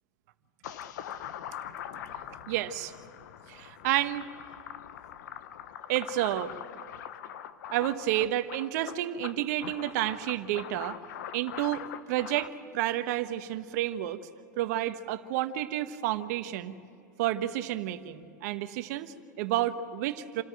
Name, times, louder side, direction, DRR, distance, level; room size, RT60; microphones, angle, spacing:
sound 1, 0.6-12.5, left 10 dB, 65° left, 1.1 m, -42 dB
voice 1, 2.5-2.9 3.5-4.2 5.9-6.5 7.7-11.0 11.3-14.2 14.6-16.7 17.2-20.4, right 13 dB, 60° right, 10 dB, 1.2 m, -30 dB
28.0 x 13.5 x 9.1 m, 2.5 s
hypercardioid pair, 105°, 10 cm